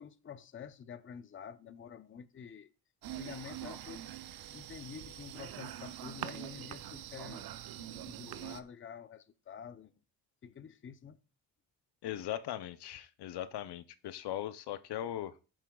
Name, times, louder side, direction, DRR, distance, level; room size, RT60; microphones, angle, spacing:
voice 1, 0.0-2.7 3.2-4.0 4.5-9.9 10.4-11.2, left 7 dB, 30° left, 0.6 m, -48 dB
sound 1, 3.0-8.6, right 12 dB, 65° right, 0.7 m, -44 dB
voice 2, 12.0-15.4, left 12 dB, 75° left, 0.7 m, -39 dB
14.5 x 7.3 x 2.3 m
cardioid pair, 100°, 40 cm